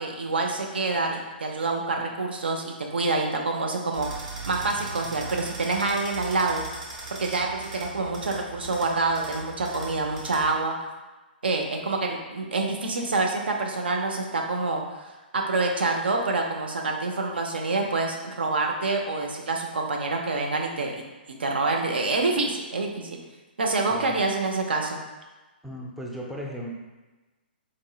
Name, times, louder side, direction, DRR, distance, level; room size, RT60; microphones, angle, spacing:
voice 1, 0.0-6.6 7.2-10.7 11.4-15.0 15.3-21.0 21.4-23.2 23.6-25.0, right 3 dB, 75° right, 1 dB, 0.5 m, -27 dB
sound 1, 3.9-10.6, right 3 dB, 40° right, 0.9 m, -39 dB
voice 2, 23.9-24.2 25.6-26.8, equal, ahead, -3 dB, 0.4 m, -36 dB
4.0 x 2.7 x 2.2 m, 1.2 s
figure-of-eight pair, 120°, 6 cm